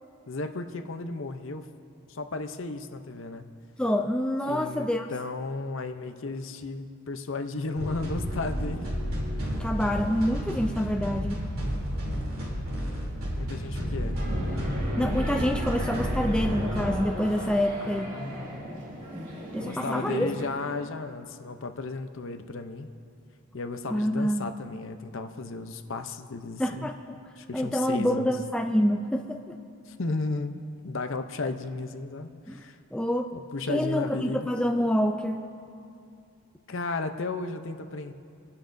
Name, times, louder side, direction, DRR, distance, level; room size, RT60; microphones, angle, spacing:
voice 1, 0.3-1.6 2.1-3.4 4.5-8.9 9.4-9.6 13.3-14.3 17.8-18.7 19.6-22.9 23.5-26.9 27.4-28.3 29.9-30.6 30.8-32.8 33.3-34.5 36.7-38.1, left 3 dB, 55° left, 8 dB, 0.6 m, -34 dB
voice 2, 3.8-5.1 9.6-11.4 15.0-18.2 19.5-20.3 23.9-24.5 26.6-27.0 27.5-29.6 32.5-32.6 32.9-33.3 33.7-35.4, equal, 5° left, 4 dB, 0.3 m, -27 dB
sound 1, 7.8-16.9, equal, 65° right, 3.2 m, -31 dB
sound 2, 14.1-20.5, right 1 dB, 35° right, 2.9 m, -38 dB
26.5 x 11.5 x 2.6 m, 2.5 s
head